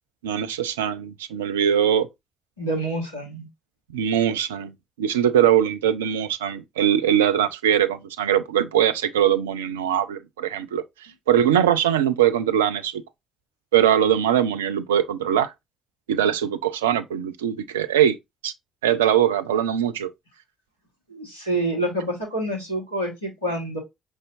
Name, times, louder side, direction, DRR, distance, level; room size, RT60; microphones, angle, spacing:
voice 1, 0.2-2.1 3.9-10.8 11.3-13.0 13.7-15.5 16.1-18.2 18.4-18.5 18.8-20.1, right 10 dB, 75° right, 0.4 m, -21 dB
voice 2, 2.6-3.5 21.1-23.8, right 1 dB, 85° left, 1.4 m, -27 dB
5.5 x 3.3 x 2.4 m
figure-of-eight pair, 40°, 0 cm